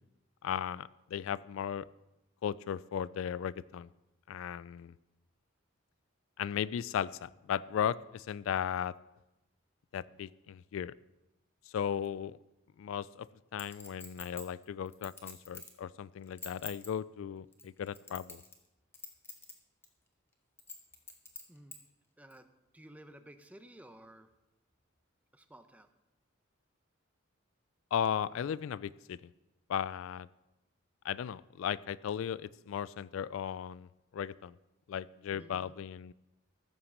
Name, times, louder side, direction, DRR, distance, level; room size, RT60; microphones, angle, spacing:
voice 1, 0.4-1.9 2.4-3.9 4.3-4.9 6.4-8.9 9.9-10.9 11.7-12.4 12.8-13.3 13.5-18.4 27.9-29.3 29.7-30.3 31.0-33.9 34.1-34.5 34.9-36.1, left 8 dB, 70° left, 19 dB, 0.3 m, -36 dB
Chink clink, 13.6-15.8 16.2-16.9 17.5-18.7 18.9-19.5 19.8-19.9 20.6-21.8 22.3-22.4, left 3 dB, 10° left, 1.4 m, -46 dB
voice 2, 22.2-22.5 22.7-24.3 25.3-25.9 35.3-35.7, right 1 dB, 5° right, 9 dB, 0.7 m, -54 dB
14.5 x 5.8 x 6.6 m, 0.96 s
head